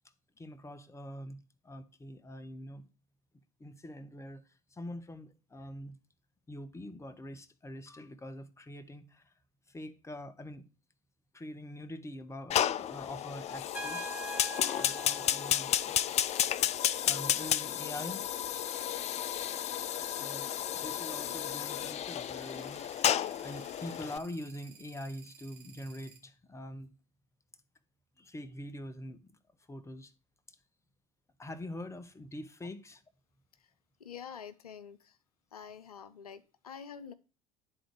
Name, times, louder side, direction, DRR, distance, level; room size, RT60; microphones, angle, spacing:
voice 1, 0.4-2.9 3.6-6.0 6.5-9.3 9.7-10.6 11.3-14.3 14.7-16.1 17.0-18.3 20.1-26.9 28.2-29.3 29.7-30.1 30.5-30.6 31.4-33.0, left 1 dB, 15° left, 1.0 m, -44 dB
Fire, 12.5-24.2, left 10 dB, 35° left, 0.4 m, -32 dB
Trumpet, 13.7-16.4, right 3 dB, 5° right, 1.0 m, -44 dB
sound 1, 15.7-26.2, right 7 dB, 60° right, 1.9 m, -56 dB
voice 2, 34.0-35.2 35.5-37.1, left 7 dB, 90° left, 0.5 m, -47 dB
10.0 x 3.9 x 4.8 m
hypercardioid pair, 65°, 19 cm